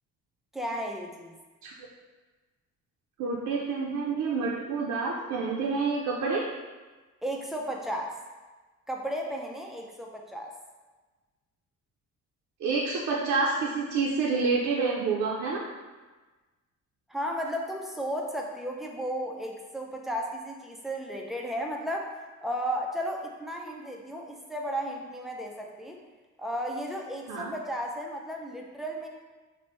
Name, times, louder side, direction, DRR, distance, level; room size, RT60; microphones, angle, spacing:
voice 1, 0.5-1.4 7.2-8.1 8.9-10.5 17.1-22.1 22.4-26.0 26.4-29.1, equal, ahead, 0 dB, 0.3 m, -34 dB
voice 2, 3.2-6.5 12.6-15.6 27.3-27.5, right 4 dB, 65° right, -3 dB, 0.5 m, -28 dB
3.2 x 2.1 x 2.9 m, 1.3 s
cardioid pair, 90°, 30 cm